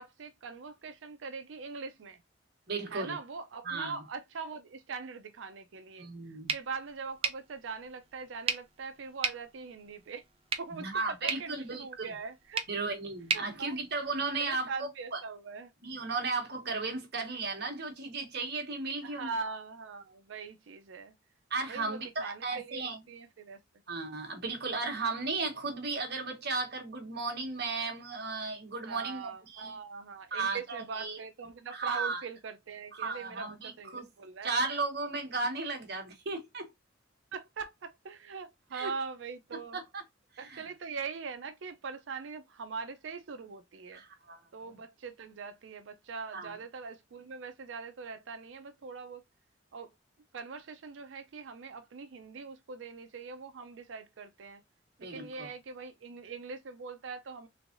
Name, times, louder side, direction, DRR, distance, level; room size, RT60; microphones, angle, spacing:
voice 1, 0.0-2.2 2.9-10.2 10.6-12.7 13.3-13.8 14.4-15.7 19.0-21.1 21.7-23.6 28.8-34.6 37.3-39.8 40.4-44.0 44.5-49.2 49.7-49.9 50.3-54.6 55.0-57.5, right 5 dB, 75° right, 0.5 m, -42 dB
voice 2, 2.7-3.2 3.7-3.9 6.0-6.5 10.8-12.1 12.7-15.2 15.8-19.3 21.5-23.0 23.9-29.7 30.3-31.2 31.8-32.2 33.0-34.0 34.4-36.7 38.7-38.9 39.5-40.0 40.5-40.6 43.9-44.4 46.3-46.5 55.0-55.5, right 3 dB, 60° right, 1.2 m, -35 dB
sound 1, 6.5-14.5, right 5 dB, 30° right, 0.6 m, -38 dB
3.5 x 3.2 x 2.5 m
head